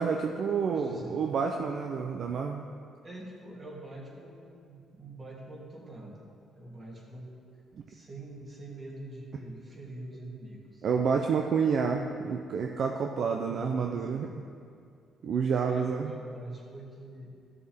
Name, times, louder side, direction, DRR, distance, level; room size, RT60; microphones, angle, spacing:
voice 1, 0.0-2.7 10.8-14.3 15.2-16.1, right 6 dB, 60° right, 2 dB, 0.5 m, -29 dB
voice 2, 0.6-1.2 3.0-6.2 6.5-7.3 7.9-10.9 13.4-14.3 15.6-17.3, right 1 dB, 35° right, -4 dB, 2.6 m, -44 dB
14.5 x 6.7 x 3.6 m, 2.3 s
cardioid pair, 90°, 0 cm